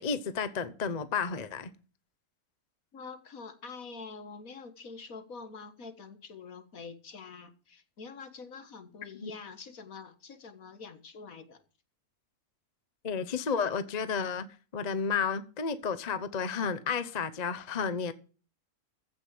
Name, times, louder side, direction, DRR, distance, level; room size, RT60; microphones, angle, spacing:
voice 1, 0.0-1.7 9.2-9.3 13.0-14.5 14.7-18.1, left 6 dB, 35° left, 0.8 m, -32 dB
voice 2, 2.9-11.6, left 4 dB, 65° left, 2.0 m, -46 dB
15.0 x 5.8 x 7.6 m
omnidirectional pair, 1.6 m